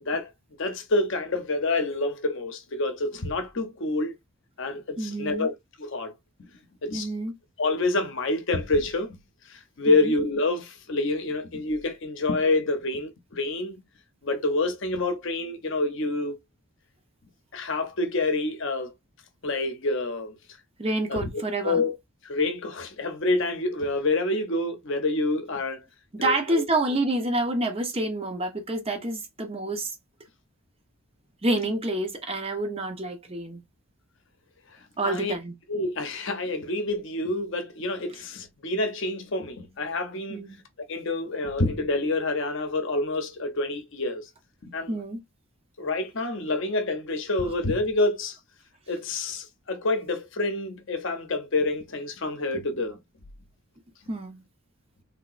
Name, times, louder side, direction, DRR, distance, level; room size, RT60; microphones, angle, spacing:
voice 1, 0.6-4.1 4.6-6.1 6.4-6.5 6.8-7.1 7.6-9.2 9.5-13.8 14.2-16.4 17.5-18.9 19.4-20.4 21.1-21.2 21.6-22.0 22.2-25.8 26.2-26.7 35.0-35.4 35.7-40.4 40.9-44.3 44.6-45.0 45.8-48.4 48.9-53.0, left 2 dB, 55° left, 0.7 m, -27 dB
voice 2, 5.0-5.5 6.9-7.3 9.9-10.1 20.8-21.8 26.1-29.9 31.4-33.6 35.0-35.5 40.3-40.6 44.9-45.2 54.1-54.4, right 2 dB, 25° right, 0.7 m, -28 dB
3.3 x 2.8 x 2.4 m
head